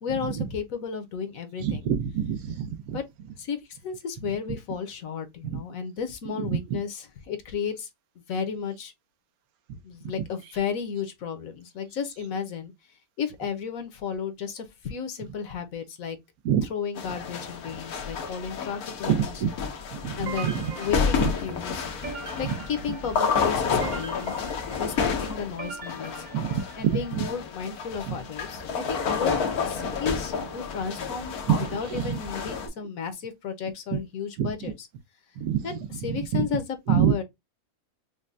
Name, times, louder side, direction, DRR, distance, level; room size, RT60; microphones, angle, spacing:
voice 1, 0.0-1.9 2.9-3.0 3.4-7.9 8.3-8.9 9.8-12.7 13.2-16.2 16.7-19.3 20.2-21.8 22.4-24.5 24.8-26.2 26.8-31.4 31.7-34.7 35.6-37.2, left 6 dB, 70° left, 1.2 m, -33 dB
voice 2, 1.6-3.0 5.4-5.6 6.4-6.6 16.4-16.7 19.1-19.5 19.9-20.7 21.2-21.3 26.3-27.2 28.1-28.2 31.5-32.2 33.9-34.0 34.4-34.5 35.4-35.7 36.1-36.5 36.9-37.2, right 8 dB, 80° right, 1.1 m, -26 dB
sound 1, 17.0-32.7, left 6 dB, 90° left, 1.4 m, -30 dB
sound 2, 20.3-27.2, right 6 dB, 55° right, 0.5 m, -42 dB
5.3 x 2.2 x 2.5 m
omnidirectional pair, 1.5 m